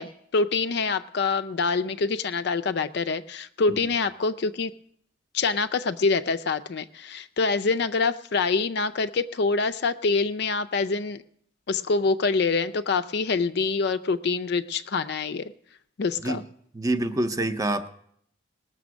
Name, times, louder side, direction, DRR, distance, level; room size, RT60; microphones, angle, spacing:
voice 1, 0.0-4.7 5.3-11.2 11.7-15.5 16.0-16.4, left 4 dB, 55° left, 13 dB, 0.4 m, -25 dB
voice 2, 16.7-17.9, right 1 dB, 15° right, 10 dB, 0.6 m, -26 dB
19.0 x 6.7 x 6.2 m, 0.68 s
head